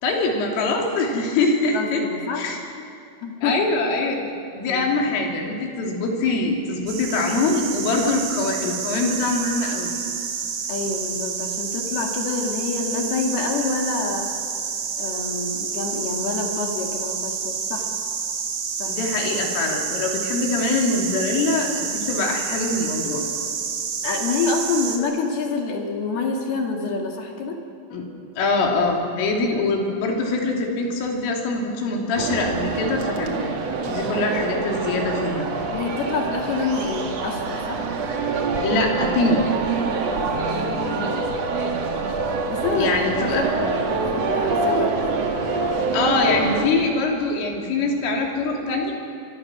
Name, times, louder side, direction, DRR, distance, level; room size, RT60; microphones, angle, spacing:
voice 1, 0.0-2.6 3.4-4.2 4.6-9.9 18.9-23.2 27.9-28.0 28.4-33.5 33.9-35.5 38.6-39.4 42.8-43.4 45.9-48.9, left 3 dB, 75° left, 1 dB, 5.5 m, -23 dB
voice 2, 1.7-2.5 3.2-3.6 4.6-4.9 8.0-8.1 10.7-14.5 15.0-17.9 18.7-18.9 24.0-27.6 29.5-29.7 35.7-37.8 40.5-41.3 42.5-45.4 46.0-46.2, left 4 dB, 60° left, 1 dB, 3.5 m, -27 dB
sound 1, 6.9-25.0, right 6 dB, 55° right, 2.6 m, -29 dB
sound 2, 32.2-46.7, right 4 dB, 80° right, 1.4 m, -25 dB
24.5 x 23.5 x 6.2 m, 2.8 s
omnidirectional pair, 6.0 m